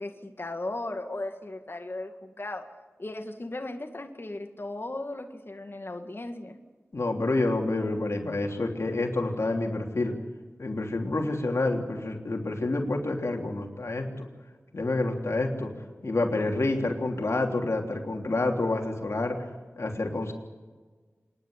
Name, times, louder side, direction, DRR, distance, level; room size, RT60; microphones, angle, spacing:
voice 1, 0.0-2.7 3.0-6.6, left 2 dB, 50° left, 5 dB, 2.0 m, -36 dB
voice 2, 6.9-10.1 10.6-14.3 14.7-15.7 16.0-19.4 19.8-20.3, left 2 dB, 75° left, 2 dB, 3.2 m, -28 dB
27.0 x 11.0 x 9.9 m, 1.3 s
wide cardioid pair, 40°, 5 cm